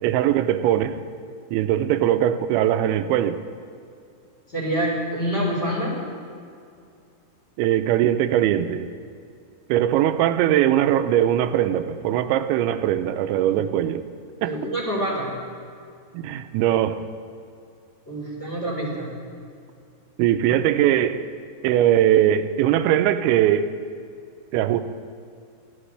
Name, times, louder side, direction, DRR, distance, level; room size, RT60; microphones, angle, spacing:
voice 1, 0.0-1.0 1.5-3.4 7.6-8.9 9.7-14.0 14.4-14.5 16.1-17.0 20.2-21.2 21.6-23.7 24.5-24.8, right 11 dB, 85° right, 9 dB, 3.0 m, -20 dB
voice 2, 4.5-5.9 14.4-15.3 18.1-19.1, right 1 dB, 15° left, -5 dB, 3.7 m, -26 dB
21.0 x 14.5 x 3.3 m, 2.4 s
omnidirectional pair, 5.3 m